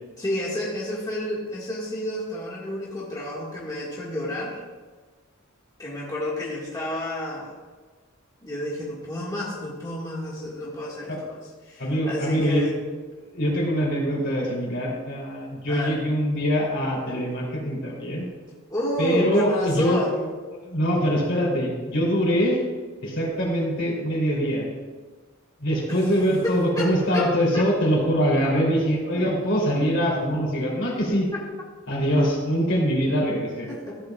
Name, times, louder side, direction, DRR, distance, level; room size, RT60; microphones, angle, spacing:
voice 1, 0.2-4.6 5.8-7.6 8.4-11.3 11.6-12.8 15.7-16.0 18.7-20.3 26.4-27.6 29.1-29.2 33.2-34.1, left 1 dB, 20° left, -6 dB, 1.6 m, -30 dB
voice 2, 11.8-12.7 13.3-18.2 19.0-20.0 20.6-22.6 23.0-24.7 25.6-31.3 31.9-33.7, equal, 60° left, -2 dB, 3.0 m, -23 dB
14.5 x 8.5 x 2.3 m, 1.4 s
head